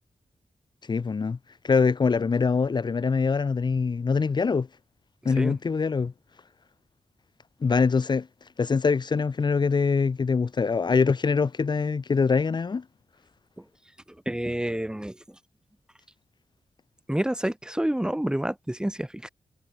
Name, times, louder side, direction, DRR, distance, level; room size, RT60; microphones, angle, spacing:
voice 1, 0.9-1.4 1.6-4.7 5.2-6.1 7.6-8.3 8.6-12.8, left 5 dB, 50° left, 1.4 m, -23 dB
voice 2, 14.3-15.2 17.1-19.3, right 1 dB, 10° right, 4.7 m, -28 dB
cardioid pair, 60°, 10 cm